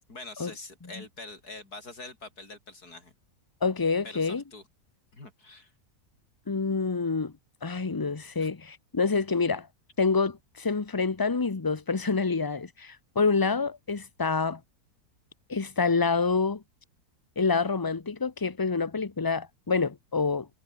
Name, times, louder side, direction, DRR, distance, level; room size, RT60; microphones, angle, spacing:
voice 1, 0.1-3.1 4.0-4.6 5.1-5.7 8.4-8.5, left 3 dB, 80° left, 5.9 m, -44 dB
voice 2, 3.6-4.4 6.5-7.3 7.6-9.7 10.0-14.6 15.5-16.6 17.4-20.5, left 4 dB, 20° left, 0.7 m, -27 dB
omnidirectional pair, 1.6 m